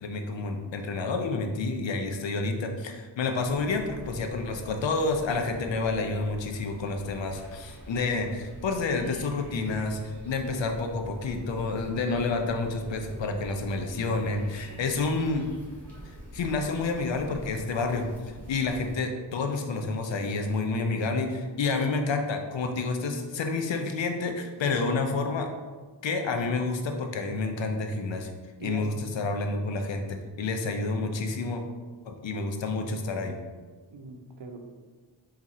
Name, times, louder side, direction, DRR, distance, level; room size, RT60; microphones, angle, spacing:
voice 1, 0.0-10.0 10.2-15.5 16.3-18.1 18.5-25.5 26.0-28.3 28.6-31.6 32.0-33.4, left 3 dB, 75° left, 4 dB, 0.6 m, -29 dB
sound 1, 3.4-18.9, equal, 5° left, 1.4 m, -45 dB
voice 2, 28.6-28.9 33.9-34.6, right 3 dB, 65° right, 3 dB, 0.7 m, -41 dB
3.6 x 2.5 x 4.2 m, 1.4 s
cardioid pair, 55°, 45 cm